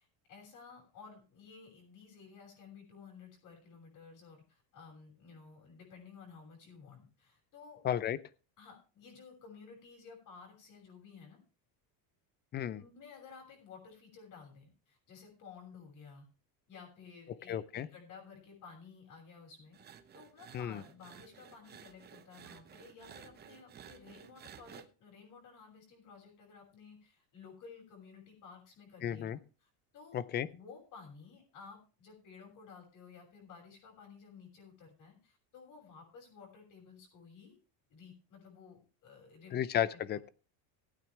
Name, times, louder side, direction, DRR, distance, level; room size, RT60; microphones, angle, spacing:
voice 1, 0.0-7.8 8.6-11.4 12.8-16.3 16.7-37.6 37.9-39.5 39.9-40.0, left 5 dB, 45° left, -2 dB, 6.0 m, -54 dB
voice 2, 7.8-8.2 12.5-12.8 17.5-17.9 20.5-20.8 29.0-29.4 30.1-30.5 39.5-40.3, left 10 dB, 25° left, 18 dB, 0.5 m, -33 dB
sound 1, 19.7-24.9, right 8 dB, 25° right, 0.8 m, -54 dB
19.0 x 9.2 x 3.3 m, 0.34 s
cardioid pair, 165°, 41 cm